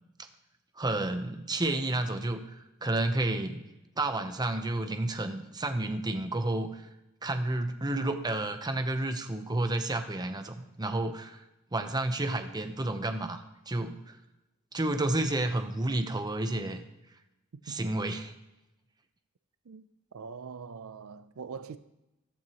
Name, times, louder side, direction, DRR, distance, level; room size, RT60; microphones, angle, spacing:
voice 1, 0.8-3.6 4.0-6.8 7.2-11.4 11.7-14.2 14.7-16.8 17.7-18.3, right 2 dB, 20° right, 0.8 m, -31 dB
voice 2, 19.7-21.8, right 5 dB, 75° right, 0.5 m, -43 dB
14.5 x 12.0 x 3.0 m
head